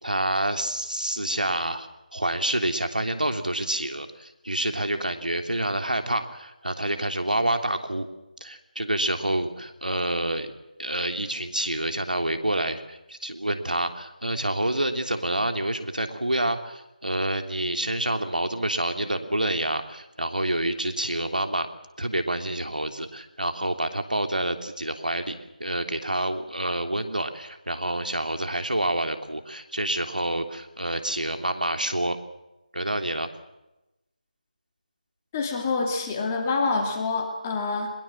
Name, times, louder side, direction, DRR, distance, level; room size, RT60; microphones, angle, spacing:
voice 1, 0.0-8.1 8.4-10.5 10.8-21.7 22.0-32.2 32.7-33.3, right 1 dB, 80° right, 6 dB, 3.3 m, -28 dB
voice 2, 35.3-37.9, left 3 dB, 15° left, 3 dB, 2.3 m, -26 dB
22.0 x 22.0 x 7.4 m, 0.94 s
figure-of-eight pair, 165°, 4 cm